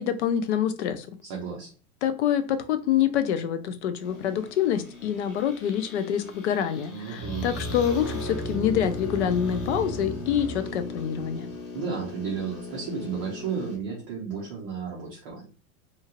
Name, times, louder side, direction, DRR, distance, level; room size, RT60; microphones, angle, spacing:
voice 1, 0.0-1.1 2.0-11.5, left 9 dB, 50° left, 0.5 m, -26 dB
voice 2, 1.2-1.7 6.9-7.5 11.7-15.5, right 6 dB, 25° right, 0.6 m, -33 dB
sound 1, 4.0-13.8, left 3 dB, 70° left, 1.2 m, -39 dB
sound 2, 7.2-12.0, right 1 dB, 25° left, 1.2 m, -36 dB
2.8 x 2.4 x 2.8 m
supercardioid pair, 160°, 45 cm